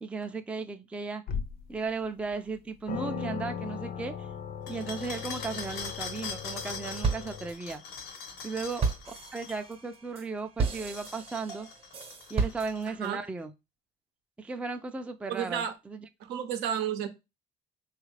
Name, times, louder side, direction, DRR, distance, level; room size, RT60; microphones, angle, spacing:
voice 1, 0.0-1.2 1.7-4.3 4.7-7.8 8.4-11.7 12.3-13.5 14.4-16.0, right 4 dB, 5° right, 0.3 m, -36 dB
sound 1, 1.3-1.8 2.3-2.4 2.9-7.5, left 6 dB, 65° left, 0.6 m, -38 dB
sound 2, 4.7-9.6 10.6-13.1, left 5 dB, 90° left, 0.9 m, -42 dB
sound 3, 6.2-6.7 7.0-13.1, right 5 dB, 35° right, 0.8 m, -33 dB
voice 2, 15.3-15.7 16.2-17.1, right 9 dB, 85° right, 0.6 m, -31 dB
3.4 x 2.4 x 3.2 m
cardioid pair, 110°, 17 cm